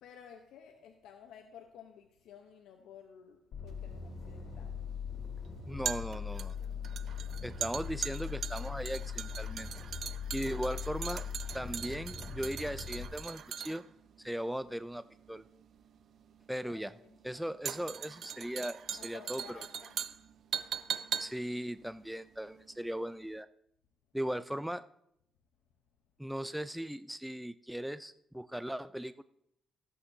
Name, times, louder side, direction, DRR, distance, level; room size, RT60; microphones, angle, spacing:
voice 1, 0.0-5.0 10.4-10.8 16.7-17.2 18.9-20.0, left 8 dB, 85° left, 4 dB, 0.9 m, -54 dB
sound 1, 3.5-13.1, left 7 dB, 65° left, 3.2 m, -41 dB
sound 2, 3.7-23.0 23.2-23.4, right 8 dB, 60° right, 0.5 m, -41 dB
voice 2, 5.7-6.5 7.4-9.7 10.3-11.2 11.5-13.8 14.2-15.4 16.5-16.9 17.2-19.6 21.2-23.5 24.1-24.9 26.2-29.2, equal, 5° right, 13 dB, 0.3 m, -38 dB
17.0 x 8.5 x 2.8 m, 0.76 s
cardioid pair, 90°, 0 cm